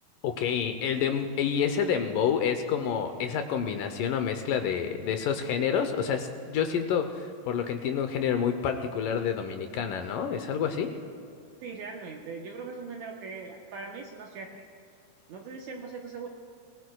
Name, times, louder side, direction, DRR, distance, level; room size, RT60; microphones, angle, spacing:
voice 1, 0.2-11.0, left 7 dB, 75° left, 7 dB, 2.2 m, -28 dB
voice 2, 11.6-14.7 15.3-16.3, right 4 dB, 70° right, 1 dB, 1.9 m, -40 dB
22.5 x 19.5 x 2.3 m, 2.5 s
omnidirectional pair, 4.3 m